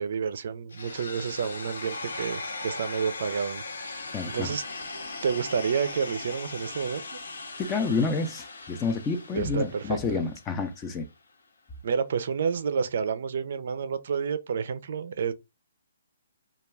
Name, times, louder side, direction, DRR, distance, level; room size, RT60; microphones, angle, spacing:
voice 1, 0.0-3.6 4.0-4.6 5.2-7.0 9.3-10.2 11.8-15.3, right 6 dB, 60° right, 0.4 m, -29 dB
sound 1, 0.7-10.7, left 3 dB, 80° left, 0.6 m, -39 dB
voice 2, 4.1-4.5 7.7-11.0, left 4 dB, 20° left, 0.4 m, -29 dB
2.3 x 2.2 x 3.3 m
hypercardioid pair, 145°, 0 cm